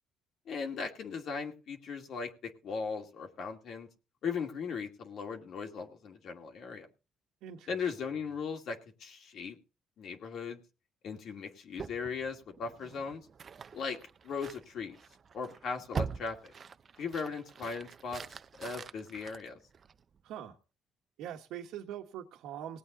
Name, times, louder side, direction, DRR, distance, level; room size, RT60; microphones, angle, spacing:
voice 1, 0.5-3.9 4.2-6.9 7.7-9.6 10.0-10.6 11.0-13.2 13.7-14.0 14.2-15.0 15.3-16.5 17.0-19.6, left 5 dB, 65° left, 3 dB, 2.4 m, -38 dB
voice 2, 7.4-7.8 20.2-20.6 21.2-22.8, right 10 dB, 80° right, -1 dB, 1.4 m, -42 dB
sound 1, 11.8-20.2, right 6 dB, 45° right, 0.7 m, -44 dB
19.0 x 8.6 x 4.0 m, 0.32 s
cardioid pair, 80°, 0 cm